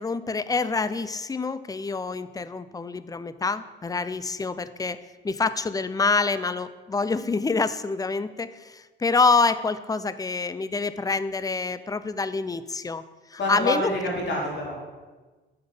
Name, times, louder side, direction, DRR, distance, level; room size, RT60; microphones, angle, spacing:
voice 1, 0.0-5.0 5.2-13.0 13.3-13.9, left 4 dB, 20° left, 14 dB, 0.5 m, -26 dB
voice 2, 13.4-14.8, left 1 dB, 60° left, -3 dB, 3.1 m, -27 dB
8.9 x 5.8 x 5.5 m, 1.3 s
cardioid pair, 90°, 20 cm